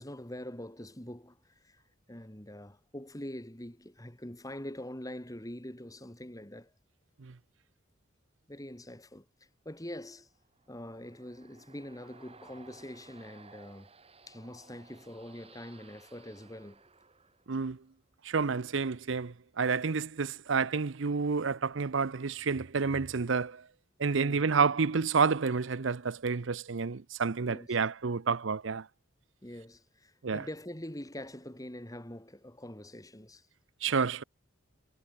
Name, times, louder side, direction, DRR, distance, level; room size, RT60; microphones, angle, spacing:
voice 1, 0.0-1.8 2.1-6.7 8.5-9.3 9.6-10.3 10.7-13.9 14.3-16.9 24.1-24.4 27.4-27.7 29.4-33.5, left 1 dB, 15° left, 3.2 m, -44 dB
sound 1, 10.4-17.9, right 4 dB, 30° right, 7.7 m, -58 dB
voice 2, 17.5-17.8 18.2-23.7 24.0-28.9 30.2-30.5 33.8-34.2, right 5 dB, 65° right, 0.7 m, -29 dB
head